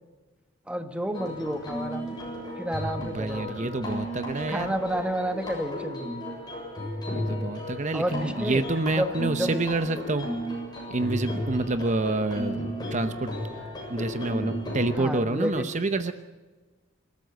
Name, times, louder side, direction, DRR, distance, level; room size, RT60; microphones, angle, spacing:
voice 1, 0.7-2.1 2.6-3.8 4.5-6.2 7.9-8.6 8.9-9.6 15.0-15.7, equal, 5° right, 7 dB, 1.4 m, -30 dB
sound 1, 1.1-14.9, equal, 20° left, 7.4 m, -34 dB
voice 2, 3.0-4.7 7.1-10.3 10.9-13.3 13.9-16.1, right 2 dB, 40° right, 9 dB, 0.8 m, -28 dB
26.5 x 13.5 x 8.0 m, 1.3 s
head